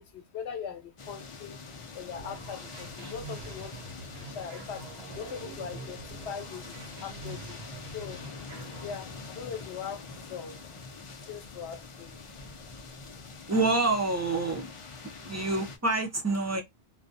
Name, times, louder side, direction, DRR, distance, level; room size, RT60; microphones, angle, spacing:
voice 1, 0.0-1.6 1.9-3.9 4.2-4.9 5.1-7.6 7.9-8.2 8.8-10.6 11.3-12.2, left 7 dB, 80° left, 0.9 m, -41 dB
sound 1, 1.0-15.8, left 4 dB, 50° left, 0.4 m, -45 dB
sound 2, 2.1-8.9, right 3 dB, 75° right, 0.8 m, -45 dB
voice 2, 13.5-14.7 15.2-16.6, right 3 dB, 25° right, 0.3 m, -27 dB
2.3 x 2.1 x 2.5 m
omnidirectional pair, 1.1 m